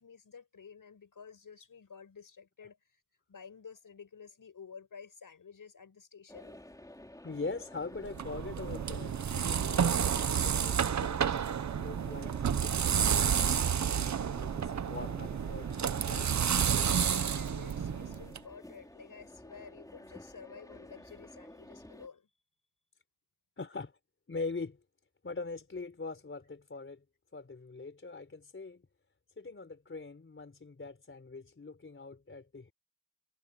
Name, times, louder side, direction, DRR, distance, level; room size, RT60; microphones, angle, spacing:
voice 1, 0.0-3.0 3.3-6.6 17.0-22.3, left 6 dB, 55° left, 5.8 m, -51 dB
sound 1, 6.3-22.1, left 1 dB, 10° left, 3.3 m, -52 dB
voice 2, 7.2-11.2 11.8-16.3 23.6-23.9 24.3-24.8 25.2-27.0 27.3-28.8 29.4-32.7, left 3 dB, 30° left, 4.1 m, -42 dB
sound 2, 8.0-18.4, right 8 dB, 45° right, 0.8 m, -30 dB
wide cardioid pair, 115°, 39 cm